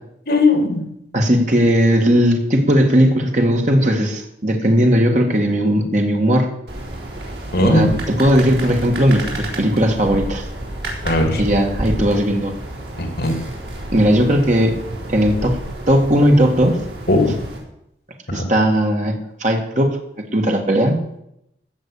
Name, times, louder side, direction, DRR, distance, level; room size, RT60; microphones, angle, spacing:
voice 1, 0.3-0.8 7.5-8.0 11.0-11.4 13.0-13.3 17.1-17.3 18.3-18.4, left 2 dB, 65° left, 4 dB, 3.0 m, -17 dB
voice 2, 1.1-6.5 7.6-10.5 11.4-12.5 13.9-14.7 15.1-15.6 15.9-16.8 18.3-21.0, equal, 40° right, 2 dB, 2.1 m, -17 dB
sound 1, 6.7-17.6, right 1 dB, 70° right, 4.0 m, -30 dB
15.5 x 6.6 x 8.5 m, 0.78 s
head